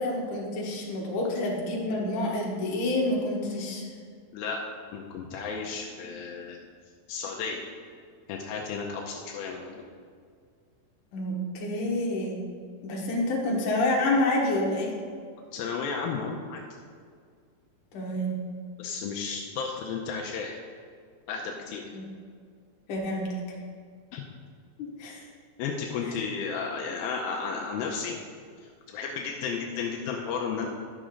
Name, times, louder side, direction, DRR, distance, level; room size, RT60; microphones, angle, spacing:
voice 1, 0.0-3.8 11.1-12.4 12.8-14.9 17.9-18.4 21.9-22.0 22.9-23.3 25.0-25.2, left 1 dB, 60° left, -3 dB, 2.4 m, -28 dB
voice 2, 4.9-6.6 7.1-7.7 8.3-9.8 15.5-16.6 18.8-20.6 21.3-21.9 24.1-24.2 25.6-28.2 28.9-30.7, left 5 dB, 85° left, -1 dB, 2.2 m, -33 dB
11.0 x 6.4 x 3.7 m, 2.1 s
omnidirectional pair, 4.9 m